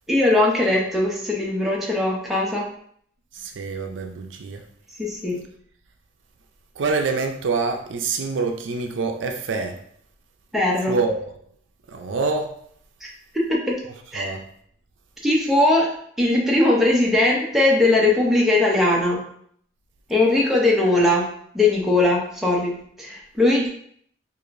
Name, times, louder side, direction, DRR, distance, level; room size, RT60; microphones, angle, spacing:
voice 1, 0.1-2.7 5.0-5.4 10.5-10.9 13.0-13.1 13.3-13.8 14.1-14.3 15.2-15.9 16.2-19.2 20.1-21.3 21.5-23.7, left 2 dB, ahead, 0.6 m, -20 dB
voice 2, 3.3-4.6 6.8-9.8 10.9-11.3 11.9-12.5 14.1-14.4, right 4 dB, 80° right, 0.5 m, -26 dB
4.8 x 2.6 x 2.5 m
head